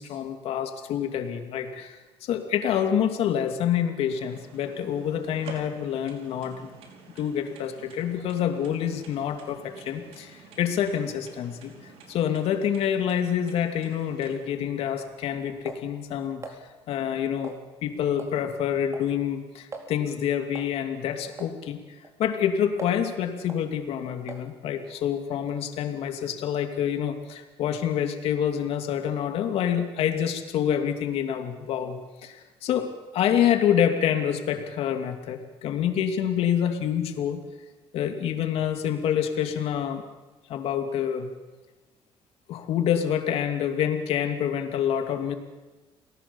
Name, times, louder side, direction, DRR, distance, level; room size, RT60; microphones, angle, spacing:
voice 1, 0.0-2.0 2.3-6.7 7.2-11.7 12.1-16.4 16.9-21.8 22.2-32.4 32.6-37.4 37.9-40.0 40.5-41.3 42.5-45.4, left 9 dB, 75° left, 5 dB, 2.7 m, -27 dB
sound 1, 4.0-14.3, right 5 dB, 80° right, 5.1 m, -49 dB
sound 2, 14.3-16.6 17.4-17.9 18.2-18.4 18.7-19.1 19.4-19.5 19.7-19.9 20.5-20.8 21.4-21.6 22.0-23.1 23.5-23.7 24.3-24.5, right 3 dB, 30° right, 4.0 m, -43 dB
29.5 x 19.0 x 7.2 m, 1.2 s
cardioid pair, 120°, 10 cm